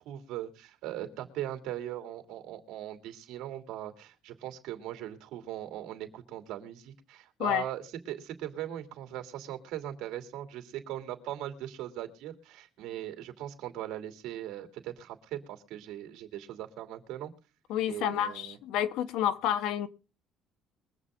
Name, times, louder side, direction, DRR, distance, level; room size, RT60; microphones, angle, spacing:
voice 1, 0.0-17.3 17.9-18.6, right 12 dB, 80° right, 2.9 m, -39 dB
voice 2, 17.7-19.9, left 10 dB, 80° left, 1.2 m, -29 dB
23.0 x 8.0 x 3.7 m
cardioid pair, 160°, 0 cm